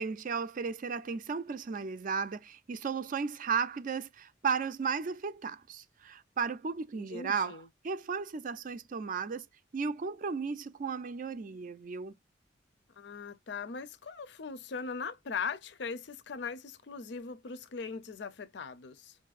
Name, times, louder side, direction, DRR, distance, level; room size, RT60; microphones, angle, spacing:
voice 1, 0.0-9.5 9.7-12.1, right 5 dB, 50° right, 0.4 m, -35 dB
voice 2, 6.9-7.7 13.0-19.2, left 5 dB, 70° left, 0.5 m, -40 dB
5.6 x 2.6 x 2.4 m
head